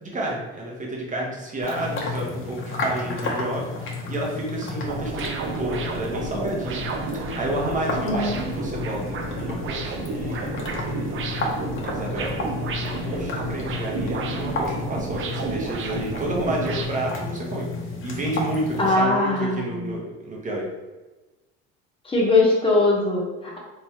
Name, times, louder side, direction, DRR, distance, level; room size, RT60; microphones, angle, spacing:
voice 1, 0.0-6.8 7.1-11.3 11.8-12.3 12.8-17.7 18.0-20.7, right 1 dB, 25° right, -2 dB, 1.1 m, -31 dB
sound 1, 1.6-18.9, left 2 dB, 40° left, 0.9 m, -32 dB
sound 2, 4.8-16.9, right 3 dB, 40° right, 0.5 m, -31 dB
voice 2, 8.0-8.4 18.8-19.9 22.0-23.6, left 2 dB, 15° left, -3 dB, 1.1 m, -21 dB
3.4 x 3.0 x 2.9 m, 1.2 s
supercardioid pair, 110°, 33 cm